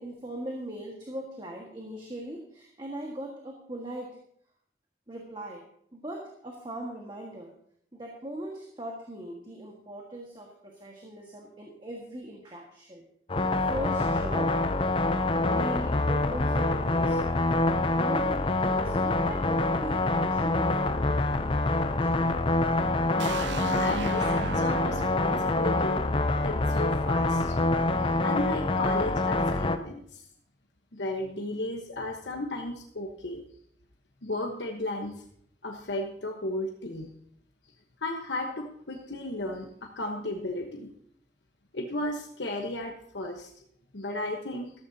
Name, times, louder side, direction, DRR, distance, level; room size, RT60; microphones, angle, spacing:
voice 1, 0.0-4.2 5.1-5.6 5.9-7.5 7.9-13.0 13.7-14.5 15.4-17.2 17.9-21.0 22.0-22.1, right 1 dB, 25° right, 0 dB, 1.6 m, -39 dB
sound 1, 13.3-29.8, left 2 dB, 30° left, 0.5 m, -26 dB
voice 2, 23.1-26.0 26.4-27.6 28.2-30.2 30.9-33.4 34.2-35.2 35.6-37.1 38.0-40.9 41.7-43.5 43.9-44.7, left 1 dB, 80° left, 2 dB, 1.1 m, -34 dB
sound 2, 23.2-27.0, right 6 dB, 90° right, 0.6 m, -38 dB
14.0 x 13.5 x 2.8 m, 0.67 s
head